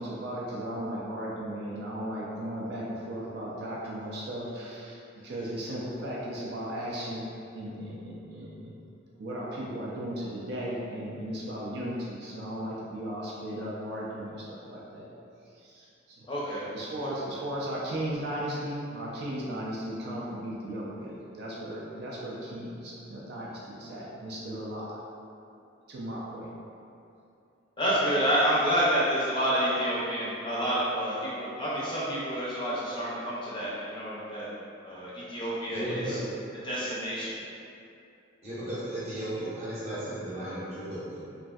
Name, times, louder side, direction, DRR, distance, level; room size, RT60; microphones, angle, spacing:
voice 1, 0.0-7.3 7.5-8.8 9.2-15.1 15.6-16.3 16.7-25.0 25.9-26.5, right 1 dB, 55° right, -5 dB, 0.4 m, -36 dB
voice 2, 16.3-16.6 17.0-17.1 27.8-34.5 34.8-36.2 36.6-37.4, equal, 25° left, -8 dB, 0.5 m, -28 dB
voice 3, 35.7-36.2 38.4-41.3, right 1 dB, 35° right, -9 dB, 0.8 m, -35 dB
3.0 x 2.5 x 2.3 m, 2.6 s
head